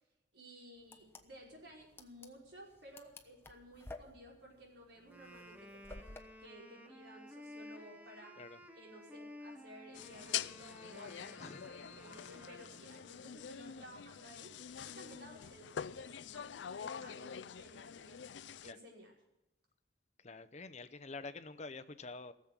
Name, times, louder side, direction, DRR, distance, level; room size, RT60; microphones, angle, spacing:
voice 1, 0.3-6.0 6.4-8.4 8.7-14.5 14.8-18.2 18.6-19.1, equal, 70° right, -2 dB, 5.3 m, -56 dB
sound 1, 0.8-6.2, left 2 dB, 15° left, 1.0 m, -53 dB
Wind instrument woodwind instrument, 5.0-13.1, left 1 dB, 10° right, 1.2 m, -54 dB
sound 2, 9.9-18.7, left 9 dB, 90° left, 0.4 m, -45 dB
voice 2, 11.4-11.7 18.6-18.8 20.2-22.3, left 3 dB, 40° left, 12 dB, 0.8 m, -47 dB
18.5 x 7.5 x 8.9 m, 0.91 s
head